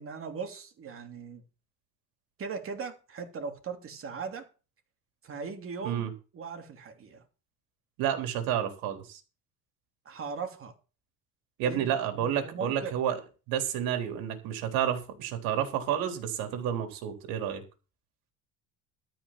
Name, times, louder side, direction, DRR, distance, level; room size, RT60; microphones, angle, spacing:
voice 1, 0.0-1.4 2.4-4.5 5.2-6.0 6.3-7.2 10.0-10.7 11.7-12.9, right 5 dB, 40° right, 3.0 m, -39 dB
voice 2, 8.0-9.2 11.6-13.2 13.5-17.6, right 9 dB, 80° right, 3.9 m, -30 dB
13.5 x 6.1 x 7.5 m
cardioid pair, 135°, 35 cm